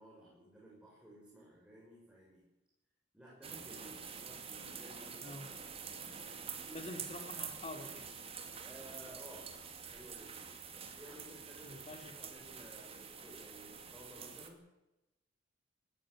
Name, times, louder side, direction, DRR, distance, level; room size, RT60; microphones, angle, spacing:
voice 1, 0.0-2.4 3.1-5.5 8.5-9.5 9.9-10.5 11.0-14.7, right 1 dB, 5° right, -6 dB, 7.1 m, -56 dB
sound 1, 3.4-14.5, right 6 dB, 30° right, 2.4 m, -47 dB
voice 2, 5.2-5.5 6.7-8.1 11.6-12.6, left 2 dB, 35° left, 6 dB, 2.8 m, -47 dB
18.5 x 14.0 x 9.9 m, 0.95 s
head